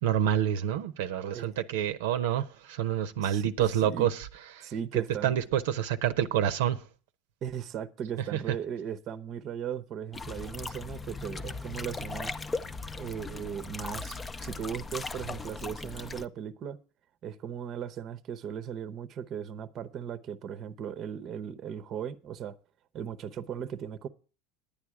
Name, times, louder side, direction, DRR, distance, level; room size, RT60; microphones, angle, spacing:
voice 1, 0.0-4.2 4.5-4.7 5.2-6.8 8.3-8.4, right 10 dB, 80° right, 0.8 m, -28 dB
voice 2, 3.2-4.1 4.6-5.4 7.4-12.3 13.0-16.8 17.2-22.6 22.9-24.1, right 8 dB, 40° right, 0.8 m, -37 dB
sound 1, 10.1-16.3, left 3 dB, 15° left, 0.6 m, -38 dB
10.5 x 8.9 x 4.8 m
supercardioid pair, 120°, 0 cm